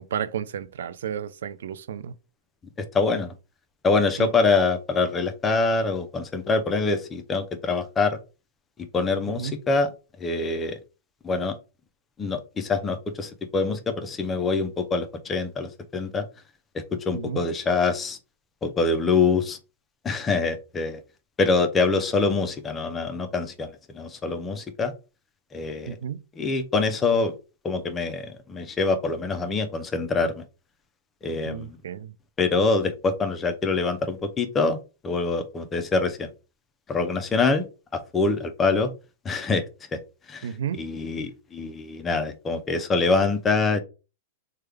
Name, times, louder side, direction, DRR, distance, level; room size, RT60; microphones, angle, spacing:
voice 1, 0.0-2.1 4.2-4.3 9.4-9.6 17.1-17.4 25.9-26.2 31.4-32.1 40.4-40.8, right 8 dB, 75° right, 0.3 m, -32 dB
voice 2, 2.8-3.3 3.8-8.2 8.9-9.9 10.2-10.8 11.2-11.6 12.2-16.3 16.7-18.2 18.6-19.6 20.0-21.0 21.4-23.7 23.9-24.9 25.5-26.0 26.4-27.3 27.6-30.4 31.2-31.8 32.4-34.8 35.0-36.3 36.9-37.6 38.1-38.9 39.2-39.6 39.9-40.0 40.3-43.8, left 3 dB, 15° left, 0.5 m, -25 dB
3.3 x 2.2 x 3.4 m
hypercardioid pair, 150°, 0 cm